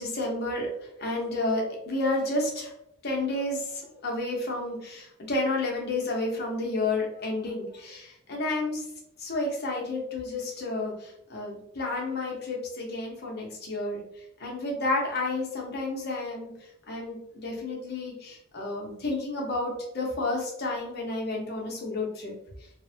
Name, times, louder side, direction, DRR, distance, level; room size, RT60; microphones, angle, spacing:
voice 1, 0.0-2.7 3.0-8.8 9.2-14.0 14.4-16.5 16.9-22.3, left 2 dB, 50° left, -2 dB, 0.8 m, -31 dB
3.1 x 2.1 x 2.6 m, 0.78 s
head